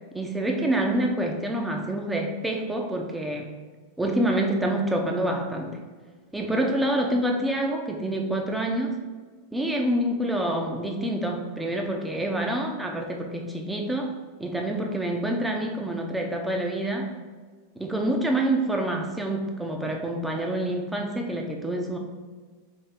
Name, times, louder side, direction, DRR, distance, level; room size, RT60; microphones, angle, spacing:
voice 1, 0.1-3.5 4.0-5.8 6.3-9.0 9.5-14.1 14.4-17.1 17.8-22.0, right 1 dB, 5° right, 1 dB, 0.7 m, -27 dB
3.7 x 3.1 x 4.3 m, 1.4 s
supercardioid pair, 130°, 0 cm